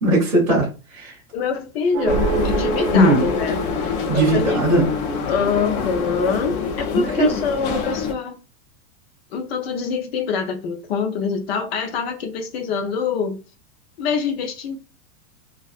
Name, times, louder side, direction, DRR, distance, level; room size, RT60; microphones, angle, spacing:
voice 1, 0.0-1.2 2.9-3.2 4.1-4.9 6.9-7.3, right 1 dB, 10° right, 0.4 m, -18 dB
voice 2, 1.3-3.6 4.1-4.6 5.3-8.4 9.3-13.4 14.0-14.8, left 5 dB, 45° left, 0.6 m, -25 dB
sound 1, 1.9-5.3, right 8 dB, 65° right, 0.7 m, -29 dB
sound 2, 2.1-8.1, left 4 dB, 80° left, 0.8 m, -25 dB
2.5 x 2.4 x 2.3 m
supercardioid pair, 175°, 43 cm